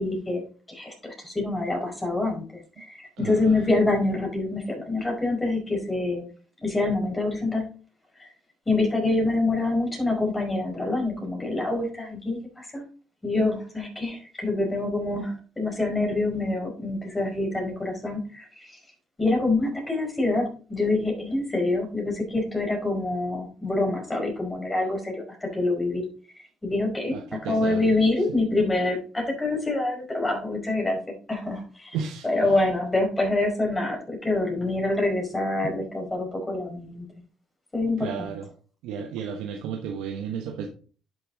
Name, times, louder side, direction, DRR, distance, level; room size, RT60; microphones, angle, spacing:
voice 1, 0.0-2.4 2.8-6.2 6.6-7.7 8.2-8.3 8.7-12.8 13.2-18.8 19.2-26.0 26.6-31.0 31.3-37.1 37.7-38.3, left 2 dB, 20° left, 1 dB, 5.1 m, -26 dB
voice 2, 3.2-3.6 27.1-27.8 31.9-32.5 38.0-38.5 38.8-40.7, right 7 dB, 75° right, 3 dB, 1.0 m, -33 dB
10.5 x 6.7 x 3.9 m, 0.39 s
hypercardioid pair, 55°, 0 cm